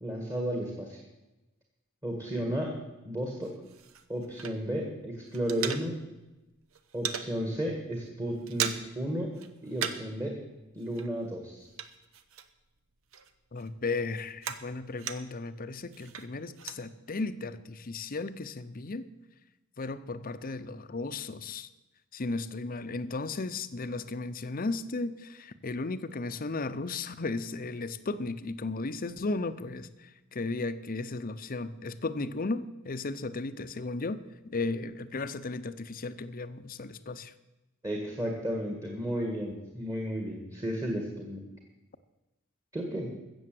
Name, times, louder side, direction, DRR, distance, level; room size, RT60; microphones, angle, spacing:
voice 1, 0.0-1.0 2.0-2.7 3.0-3.5 4.1-6.0 6.9-9.3 9.6-10.4 10.8-11.7 37.8-41.4 42.7-43.1, equal, 15° right, 1 dB, 1.8 m, -33 dB
sound 1, 3.4-4.9 5.2-6.3 6.6-7.3 7.7-7.9 8.2-9.1 9.3-10.2 10.4-12.8 13.1-15.5 15.9-16.8, right 8 dB, 70° right, 0.9 m, -38 dB
voice 2, 13.5-19.0 19.8-21.7 22.1-29.9 30.3-34.2 34.5-37.3, left 3 dB, 40° left, 12 dB, 0.7 m, -35 dB
15.5 x 7.0 x 7.7 m, 1.0 s
head